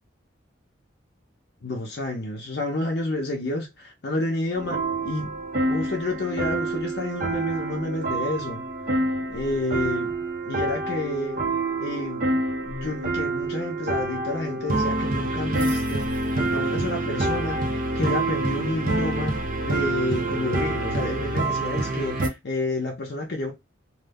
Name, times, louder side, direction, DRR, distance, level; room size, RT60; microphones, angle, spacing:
voice 1, 1.6-5.4 5.7-8.7 9.3-10.1 10.4-11.4 11.8-12.3 12.6-23.5, left 2 dB, 55° left, 0.6 m, -30 dB
sound 1, 4.6-22.3, right 2 dB, 45° right, 0.5 m, -27 dB
2.4 x 2.0 x 3.4 m
head